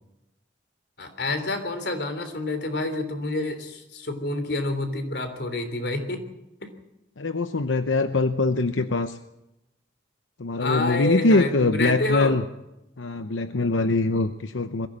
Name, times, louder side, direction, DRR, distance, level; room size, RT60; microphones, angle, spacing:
voice 1, 1.0-6.2 6.6-6.7 10.6-12.4, left 2 dB, 60° left, 8 dB, 3.3 m, -28 dB
voice 2, 7.2-9.2 10.4-12.4 13.0-14.9, left 3 dB, 90° left, 10 dB, 0.9 m, -23 dB
22.0 x 15.0 x 8.8 m, 0.91 s
head